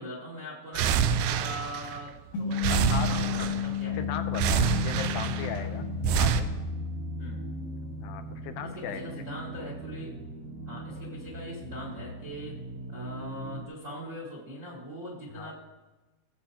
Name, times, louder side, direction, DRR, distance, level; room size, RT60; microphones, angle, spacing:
voice 1, 0.0-4.0 7.2-7.4 8.6-10.1 10.6-12.6 12.9-15.5, equal, 45° right, -5 dB, 0.9 m, -41 dB
sound 1, 0.8-2.2 2.5-3.8 4.3-5.6 6.0-6.4, right 7 dB, 85° right, 1.7 m, -27 dB
sound 2, 2.3-7.0, left 10 dB, 70° left, 2.2 m, -33 dB
voice 2, 2.7-3.2 3.9-5.9 6.2-6.5 8.0-9.0 15.3-15.5, left 8 dB, 85° left, 8 dB, 2.5 m, -37 dB
sound 3, 3.9-13.6, equal, 65° right, 1.9 m, -38 dB
17.0 x 7.8 x 2.9 m, 1.2 s
omnidirectional pair, 4.1 m